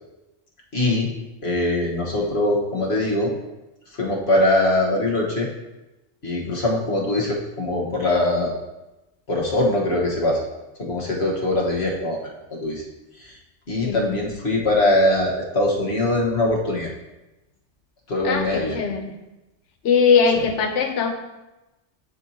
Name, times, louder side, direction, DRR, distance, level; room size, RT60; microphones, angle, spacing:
voice 1, 0.7-1.1 1.4-3.3 3.9-5.5 6.2-8.5 9.3-10.5 10.8-12.8 13.2-13.3 13.7-16.9 18.1-18.8, left 1 dB, 60° left, -2 dB, 1.5 m, -22 dB
voice 2, 18.2-19.1 19.8-21.1, left 5 dB, 80° left, 6 dB, 1.1 m, -20 dB
12.0 x 4.5 x 2.8 m, 1.0 s
omnidirectional pair, 1.2 m